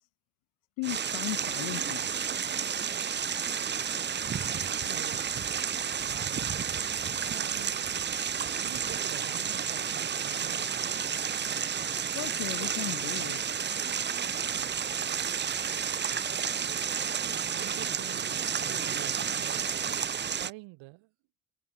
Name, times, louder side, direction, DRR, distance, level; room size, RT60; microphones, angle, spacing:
voice 1, 0.8-2.1 12.1-13.4, left 29 dB, 80° left, 1.2 m, -36 dB
sound 1, 0.8-20.5, right 7 dB, 25° right, 0.6 m, -31 dB
voice 2, 4.7-5.3 6.0-6.8 7.3-8.1 8.6-11.0 17.5-19.8 20.3-21.1, right 23 dB, 75° right, 3.4 m, -47 dB
hypercardioid pair, 55°, 45 cm